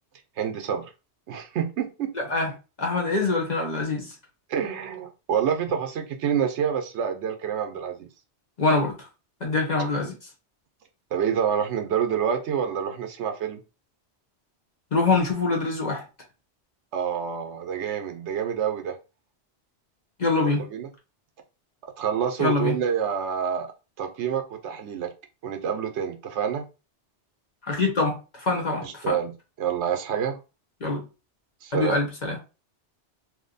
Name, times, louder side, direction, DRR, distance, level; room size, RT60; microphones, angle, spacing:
voice 1, 0.4-0.9 1.3-2.1 4.5-8.1 11.1-13.6 16.9-19.0 20.4-20.9 21.8-23.7 24.0-25.1 25.4-26.6 28.8-30.4 31.6-32.0, right 8 dB, 75° right, 0.9 m, -27 dB
voice 2, 2.1-2.5 2.8-4.1 8.6-9.1 9.4-10.2 14.9-16.0 20.2-20.6 22.4-22.7 27.6-29.2 30.8-31.0 31.7-32.4, left 3 dB, 40° left, 0.9 m, -24 dB
2.9 x 2.1 x 3.9 m
omnidirectional pair, 1.2 m